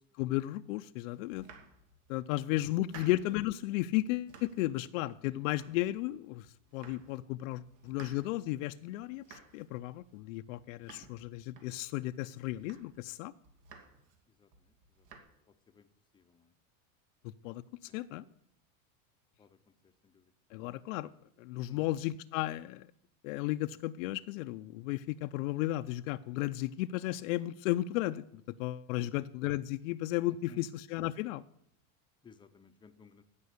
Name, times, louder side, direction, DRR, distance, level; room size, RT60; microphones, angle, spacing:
voice 1, 0.2-1.5 2.1-6.5 6.7-13.3 17.2-17.6 17.9-18.2 20.5-21.1 21.4-22.9 23.2-28.2 28.6-31.4, left 16 dB, 75° left, 9 dB, 0.6 m, -34 dB
Domestic sounds home sounds, 1.2-2.2 2.5-3.5 3.8-4.7 5.0-6.2 6.4-7.2 7.5-12.1 12.4-13.1 13.4-14.2 14.5-15.2, right 5 dB, 70° right, 2.5 m, -56 dB
voice 2, 14.3-15.1 15.5-15.9 16.1-16.5 17.9-18.3 19.4-20.3 21.7-21.9 29.0-29.2 30.5-30.7 32.2-33.2, left 5 dB, 10° left, 9 dB, 0.6 m, -60 dB
15.5 x 5.3 x 8.2 m, 0.72 s
supercardioid pair, 140°, 40 cm